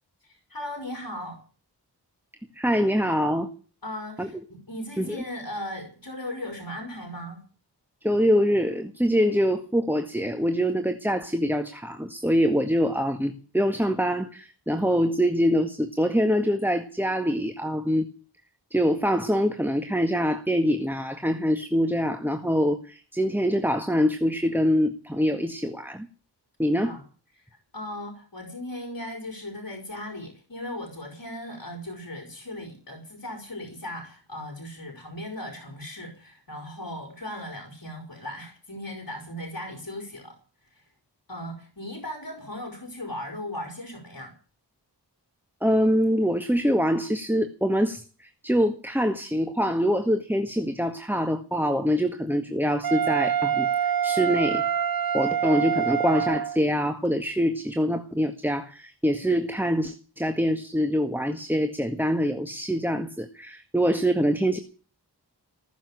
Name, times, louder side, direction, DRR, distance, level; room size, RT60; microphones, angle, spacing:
voice 1, 0.2-1.4 3.8-7.4 26.8-27.0 27.3-40.4 40.7-40.9 41.3-44.3, left 1 dB, 55° left, 3 dB, 5.1 m, -37 dB
voice 2, 2.6-3.5 4.2-4.3 5.0-5.2 8.0-18.1 18.7-26.1 26.6-26.9 45.6-54.7 55.1-64.6, equal, 5° right, 7 dB, 1.8 m, -24 dB
Wind instrument woodwind instrument, 52.8-56.6, right 8 dB, 55° right, 0.8 m, -25 dB
19.5 x 7.4 x 9.8 m, 0.40 s
cardioid pair, 40°, 42 cm